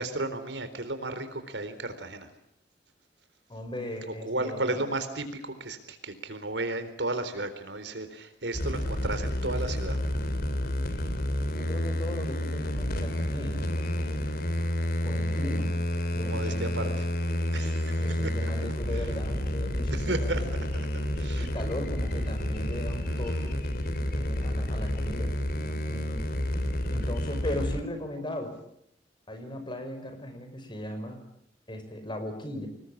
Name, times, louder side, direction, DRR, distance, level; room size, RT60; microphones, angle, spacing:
voice 1, 0.0-2.3 4.1-10.0 16.3-17.1 17.5-18.5 18.9-19.1 19.9-21.5, right 2 dB, 85° right, 10 dB, 4.0 m, -34 dB
voice 2, 3.5-4.8 11.5-13.7 15.0-15.7 16.1-16.9 18.0-20.5 21.4-23.6 24.1-25.4 25.6-26.2 26.9-28.6 29.3-31.2 31.7-32.7, left 1 dB, 25° left, 8 dB, 5.4 m, -37 dB
sound 1, 8.5-27.8, left 1 dB, 55° left, 3.4 m, -30 dB
26.5 x 20.5 x 8.7 m, 0.77 s
head